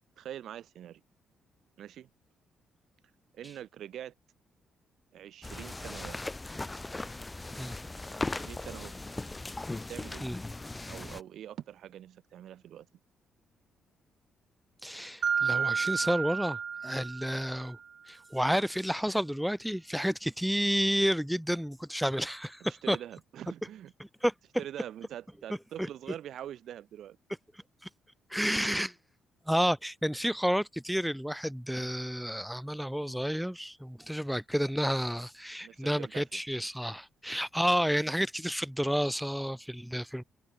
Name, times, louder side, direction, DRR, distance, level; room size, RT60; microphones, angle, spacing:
voice 1, 0.2-1.0 1.8-2.1 3.3-4.1 5.1-6.2 8.3-8.9 9.9-10.3 10.9-12.9 22.7-23.9 24.6-27.2 35.6-36.4, right 11 dB, 70° right, 2.3 m, -44 dB
sound 1, 5.4-11.2, left 2 dB, 15° left, 1.7 m, -38 dB
voice 2, 14.8-17.8 18.1-23.0 24.2-24.3 28.3-28.9 29.5-40.2, equal, ahead, 0.4 m, -30 dB
Mallet percussion, 15.2-17.8, right 6 dB, 50° right, 1.9 m, -31 dB
cardioid pair, 90°, 0 cm